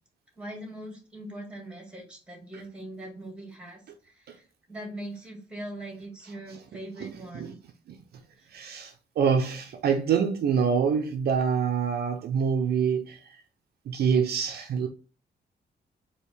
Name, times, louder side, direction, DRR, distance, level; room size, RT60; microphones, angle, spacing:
voice 1, 0.4-4.4 4.7-7.6, right 1 dB, 5° right, 1.7 m, -41 dB
voice 2, 6.5-7.6 7.9-8.0 8.5-13.4 13.9-14.9, right 6 dB, 65° right, 0.5 m, -26 dB
4.5 x 2.8 x 3.3 m
cardioid pair, 140°, 18 cm